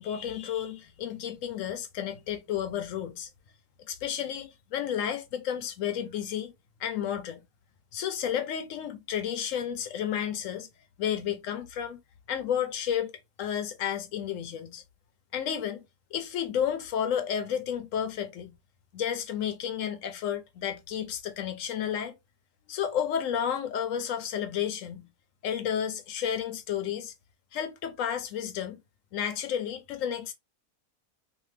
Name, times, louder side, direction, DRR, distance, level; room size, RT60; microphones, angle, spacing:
voice 1, 0.0-3.3 3.9-6.5 6.8-7.4 7.9-10.7 11.0-12.0 12.3-13.1 13.4-14.8 15.3-15.8 16.1-18.5 18.9-22.1 22.7-25.1 25.4-27.1 27.5-28.8 29.1-30.3, left 9 dB, 70° left, 0.9 m, -31 dB
2.7 x 2.5 x 3.1 m
omnidirectional pair, 1.5 m